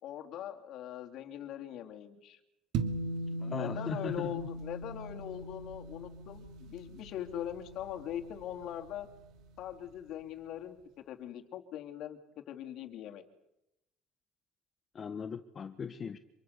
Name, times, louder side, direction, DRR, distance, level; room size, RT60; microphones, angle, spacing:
voice 1, 0.0-2.4 3.5-9.1 9.6-12.2 12.5-13.2, left 10 dB, 65° left, 5 dB, 3.3 m, -41 dB
sound 1, 2.7-9.3, right 2 dB, 70° right, 2.6 m, -40 dB
voice 2, 3.4-4.4 14.9-16.2, left 6 dB, 40° left, 10 dB, 1.4 m, -39 dB
26.5 x 24.0 x 6.9 m, 0.89 s
supercardioid pair, 95°, 0 cm